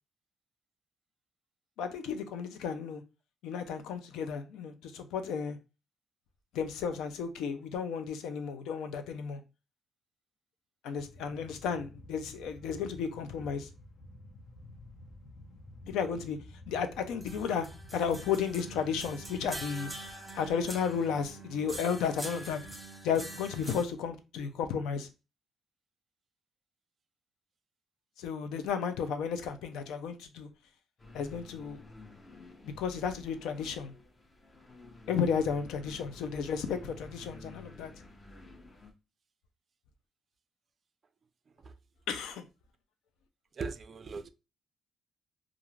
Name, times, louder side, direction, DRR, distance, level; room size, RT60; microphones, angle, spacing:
voice 1, 1.8-3.0 3.4-5.6 6.5-9.4 10.8-13.7 15.9-16.4 16.7-22.6 23.0-25.1 28.2-30.5 31.1-31.8 32.6-33.9 35.1-37.9 42.1-42.4, left 6 dB, 90° left, 0.4 m, -33 dB
sound 1, 11.0-19.7, left 1 dB, 65° left, 0.7 m, -51 dB
sound 2, 17.2-23.8, right 2 dB, 5° right, 1.0 m, -44 dB
sound 3, 31.0-38.9, left 2 dB, 25° left, 0.6 m, -51 dB
voice 2, 43.5-44.3, right 4 dB, 45° right, 0.3 m, -40 dB
2.4 x 2.4 x 3.0 m
cardioid pair, 90°, 0 cm